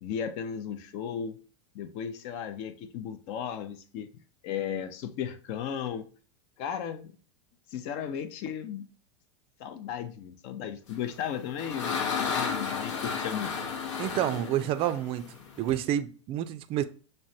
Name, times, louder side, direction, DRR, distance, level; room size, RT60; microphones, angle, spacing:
voice 1, 0.0-1.4 1.7-4.1 4.4-6.1 6.6-7.2 7.7-8.8 9.6-13.5, left 8 dB, 50° left, 0.6 m, -35 dB
sound 1, 11.1-15.8, left 6 dB, 80° left, 0.8 m, -33 dB
voice 2, 14.0-15.3 15.6-16.8, right 11 dB, 35° right, 0.4 m, -29 dB
6.0 x 2.2 x 2.7 m
hypercardioid pair, 115°, 16 cm